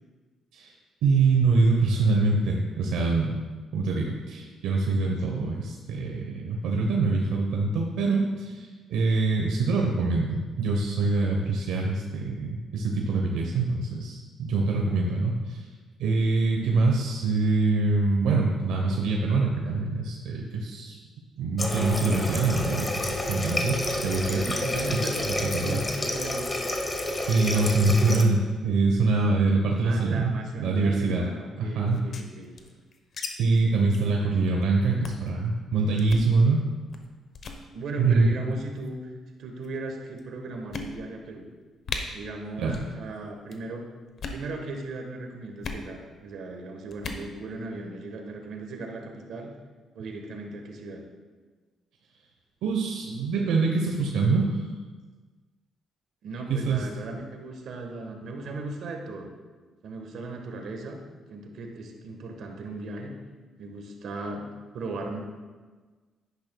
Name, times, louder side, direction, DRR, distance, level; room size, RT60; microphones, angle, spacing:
voice 1, 1.0-3.4 3.7-15.7 16.0-21.0 21.4-24.4 24.7-25.0 25.4-25.8 27.3-31.3 31.6-32.0 33.4-36.6 38.0-38.3 42.6-42.8 52.6-54.7 56.5-56.8, right 3 dB, 90° right, 0 dB, 0.9 m, -24 dB
Water tap faucet, 21.6-28.3, left 1 dB, 25° left, 1.1 m, -30 dB
voice 2, 24.3-26.5 29.8-32.5 37.7-39.0 39.4-41.5 42.1-43.8 44.3-49.5 49.9-51.0 56.2-59.3 59.8-61.0 61.3-63.1 63.6-64.5 64.7-65.2, right 2 dB, 70° right, 3 dB, 1.3 m, -37 dB
sound 1, 31.9-33.3 33.5-33.6 33.9-34.1 34.4-34.6 35.0-35.3 36.0-36.3 36.9-37.1 37.3-37.6 38.5-38.9 39.6-39.7 40.2-40.3 40.7-41.3 41.5-41.6 41.8-42.0 42.7-42.9 43.2-43.6 44.1-44.4 45.6-45.8 46.9-47.2, left 4 dB, 55° left, 1.0 m, -36 dB
10.5 x 9.6 x 2.3 m, 1.4 s
cardioid pair, 90°, 0 cm